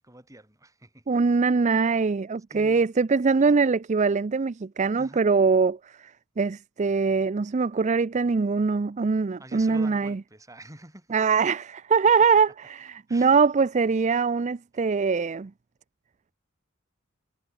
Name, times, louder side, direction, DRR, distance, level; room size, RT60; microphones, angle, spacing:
voice 1, 0.0-1.1 2.5-2.9 3.4-3.5 5.0-5.3 9.4-11.2 13.1-13.4, right 1 dB, 15° right, 6.6 m, -47 dB
voice 2, 1.1-6.1 6.4-10.2 11.1-15.5, right 5 dB, 35° right, 0.4 m, -23 dB
head